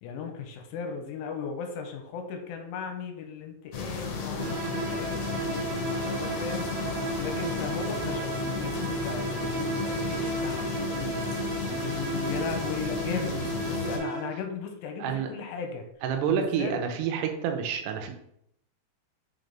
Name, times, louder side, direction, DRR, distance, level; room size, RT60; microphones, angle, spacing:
voice 1, 0.0-15.9 16.2-16.8, left 6 dB, 85° left, 5 dB, 3.1 m, -37 dB
sound 1, 3.7-14.0, left 4 dB, 65° left, 2.6 m, -33 dB
sound 2, 4.4-14.6, right 3 dB, 70° right, 2.7 m, -34 dB
voice 2, 16.0-18.1, right 8 dB, 90° right, 4 dB, 3.4 m, -28 dB
7.2 x 3.9 x 3.4 m, 0.73 s
omnidirectional pair, 5.8 m